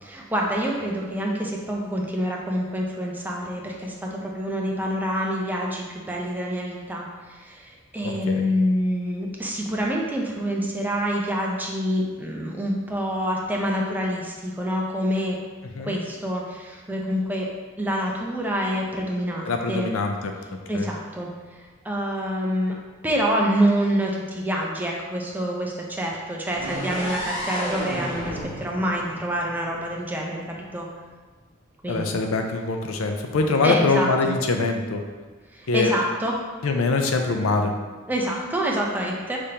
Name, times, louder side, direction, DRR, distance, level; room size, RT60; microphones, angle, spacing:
voice 1, 0.0-15.4 15.8-17.5 17.8-19.9 20.7-22.7 23.0-30.9 31.8-32.1 33.6-34.3 35.5-36.3 38.1-39.4, equal, 10° right, -2 dB, 0.6 m, -27 dB
voice 2, 8.0-8.5 15.8-16.0 19.5-20.3 20.7-20.9 31.9-35.0 35.7-35.9 36.6-37.7, left 3 dB, 85° left, 4 dB, 0.5 m, -23 dB
sound 1, 26.5-30.4, equal, 25° left, 1.4 m, -32 dB
5.1 x 3.4 x 2.8 m, 1.3 s
head